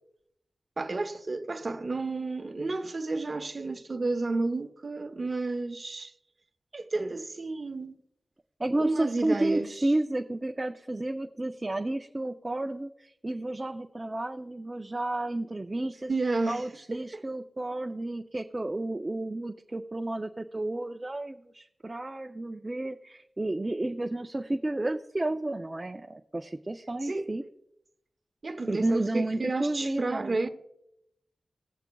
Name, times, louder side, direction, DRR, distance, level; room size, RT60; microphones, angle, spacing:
voice 1, 0.8-6.1 6.7-8.0 8.8-9.7 16.1-16.6 17.0-17.2 27.0-27.3 28.4-30.5, right 3 dB, 45° right, 0.7 m, -31 dB
voice 2, 8.6-16.1 16.5-27.4 28.7-30.4, right 2 dB, 25° right, 0.4 m, -31 dB
19.5 x 7.1 x 2.3 m
wide cardioid pair, 120°, 0 cm